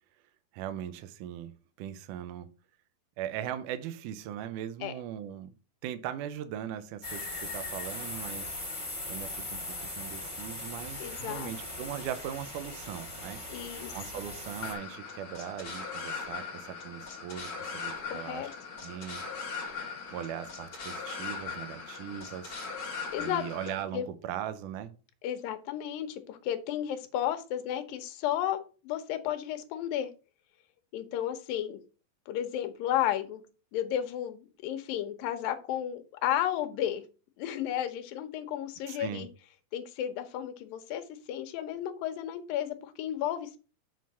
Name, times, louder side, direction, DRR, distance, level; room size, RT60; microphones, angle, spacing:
voice 1, 0.5-2.5 3.2-5.5 5.8-8.5 9.1-13.4 13.9-18.5 18.8-19.2 20.1-22.6 23.2-24.9 38.9-39.3, right 10 dB, 75° right, 2.0 m, -39 dB
sound 1, 7.0-14.7, left 2 dB, 10° left, 1.7 m, -39 dB
voice 2, 11.0-11.5 13.5-13.9 18.0-18.5 23.1-23.4 23.9-24.1 25.2-30.1 30.9-31.8 32.3-33.4 33.7-37.0 37.4-39.3 39.7-43.6, left 11 dB, 80° left, 2.6 m, -33 dB
sound 2, 14.6-23.8, left 5 dB, 40° left, 2.8 m, -39 dB
7.6 x 3.8 x 5.5 m
omnidirectional pair, 4.1 m